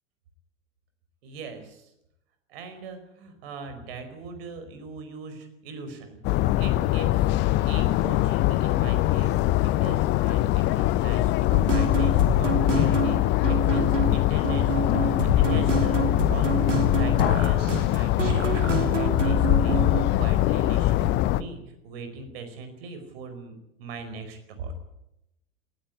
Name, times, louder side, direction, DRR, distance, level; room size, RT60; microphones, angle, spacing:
voice 1, 1.2-1.9 2.5-7.3 7.6-21.6 21.8-24.7, right 4 dB, 50° right, 8 dB, 4.9 m, -40 dB
sound 1, 6.2-21.4, left 15 dB, 30° left, 0.7 m, -22 dB
sound 2, 11.5-20.0, right 5 dB, 75° right, 2.8 m, -28 dB
19.5 x 16.0 x 9.8 m, 0.86 s
figure-of-eight pair, 90°, 37 cm